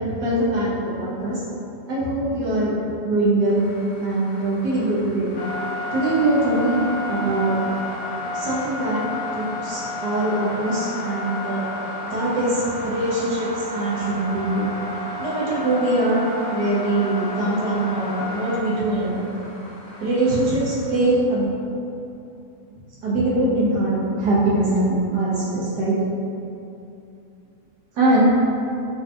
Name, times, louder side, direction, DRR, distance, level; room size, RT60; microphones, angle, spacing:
voice 1, 0.0-1.4 1.9-2.7 3.0-3.6 4.0-5.3 5.9-7.6 8.3-9.0 9.3-11.7 12.0-14.6 15.2-19.2 20.0-21.4 23.0-25.9 27.9-28.3, right 2 dB, 75° right, -8 dB, 1.5 m, -22 dB
sound 1, 3.5-21.0, left 2 dB, 65° left, 0.9 m, -32 dB
3.8 x 2.7 x 3.4 m, 2.7 s
omnidirectional pair, 1.8 m